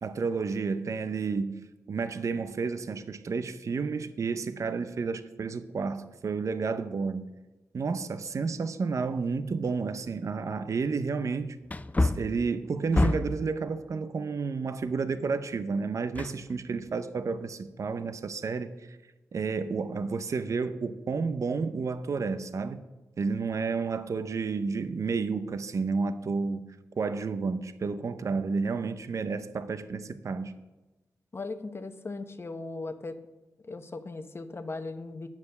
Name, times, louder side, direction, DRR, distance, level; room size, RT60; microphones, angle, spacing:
voice 1, 0.0-7.3 7.7-11.6 12.0-19.0 19.3-22.8 23.2-30.5, right 4 dB, 55° right, 0.6 m, -31 dB
Wood, 9.6-9.7 10.3-10.4 11.7-13.5 16.1-16.9 17.3-17.4, left 2 dB, 25° left, 0.5 m, -28 dB
voice 2, 31.3-33.2 33.6-35.3, left 3 dB, 40° left, 1.0 m, -38 dB
9.2 x 7.2 x 6.7 m
cardioid pair, 50°, 6 cm